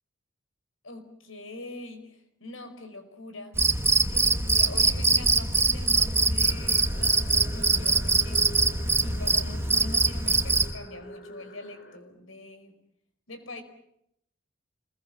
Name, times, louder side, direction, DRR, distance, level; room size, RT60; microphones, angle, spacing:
voice 1, 0.8-3.6 4.1-8.5 9.0-12.7 13.3-13.6, left 2 dB, 85° left, 9 dB, 4.9 m, -43 dB
Cricket, 3.6-10.7, right 3 dB, 15° right, 1.6 m, -23 dB
sound 1, 6.4-12.0, left 1 dB, 55° left, 4.1 m, -46 dB
29.0 x 22.0 x 7.5 m, 0.75 s
head